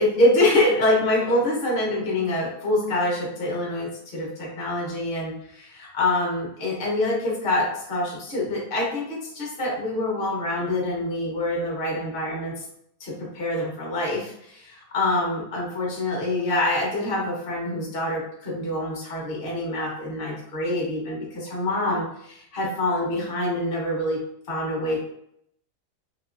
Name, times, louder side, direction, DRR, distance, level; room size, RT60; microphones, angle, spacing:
voice 1, 0.0-12.6 13.0-25.0, left 1 dB, 40° left, -3 dB, 1.0 m, -25 dB
3.7 x 2.7 x 2.5 m, 0.73 s
omnidirectional pair, 1.8 m